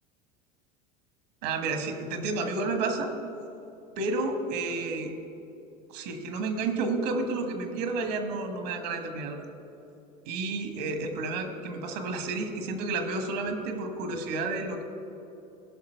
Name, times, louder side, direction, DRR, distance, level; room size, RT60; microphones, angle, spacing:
voice 1, 1.4-3.1 4.0-5.1 5.9-9.4 10.2-14.8, right 3 dB, 75° right, 6 dB, 1.4 m, -31 dB
16.5 x 5.9 x 4.5 m, 2.8 s
hypercardioid pair, 95°, 21 cm